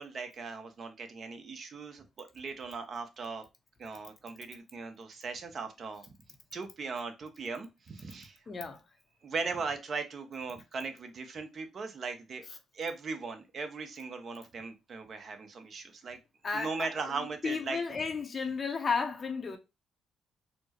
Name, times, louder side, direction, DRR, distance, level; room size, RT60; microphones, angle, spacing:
voice 1, 0.0-3.4 3.8-6.0 6.5-8.4 9.2-12.4 12.7-16.2 16.5-17.8, right 4 dB, 50° right, 0.8 m, -38 dB
voice 2, 8.5-8.8 16.4-19.6, left 5 dB, 40° left, 0.7 m, -33 dB
4.1 x 2.1 x 2.9 m
cardioid pair, 90°, 0 cm